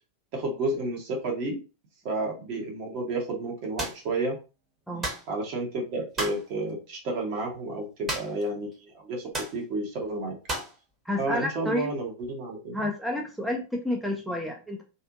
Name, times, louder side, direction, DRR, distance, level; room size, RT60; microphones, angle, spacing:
voice 1, 0.3-1.6 2.0-4.4 5.3-10.3 11.2-12.9, right 2 dB, 45° right, 0 dB, 1.1 m, -31 dB
sound 1, 3.8-4.0 5.0-5.3 6.2-6.5 8.1-8.5 8.7-8.8 9.3-9.6 10.5-10.8, right 1 dB, 20° right, 1.0 m, -32 dB
voice 2, 11.0-11.9 12.7-14.8, left 1 dB, ahead, 0 dB, 0.5 m, -30 dB
2.6 x 2.5 x 2.5 m, 0.32 s
figure-of-eight pair, 90°, 0 cm